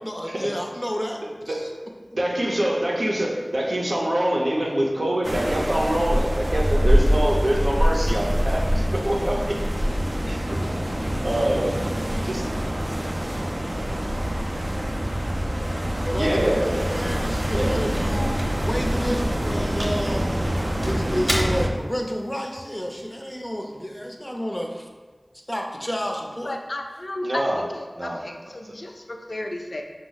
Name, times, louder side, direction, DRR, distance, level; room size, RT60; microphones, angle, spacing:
voice 1, 0.0-1.6 16.0-20.2 20.8-24.9 25.5-26.6, equal, 10° left, 2 dB, 0.5 m, -30 dB
voice 2, 2.1-9.6 10.3-10.7 11.2-11.8 12.2-12.5 16.2-16.9 17.5-17.8 27.2-27.6 28.0-28.2, right 1 dB, 75° right, -3 dB, 0.7 m, -25 dB
sound 1, 5.2-21.7, equal, 45° right, 0.4 m, -24 dB
sound 2, 16.5-24.4, equal, 15° right, 0.9 m, -37 dB
voice 3, 26.4-29.8, left 1 dB, 65° left, 3 dB, 0.4 m, -34 dB
5.0 x 2.0 x 3.9 m, 1.4 s
wide cardioid pair, 50°, 0 cm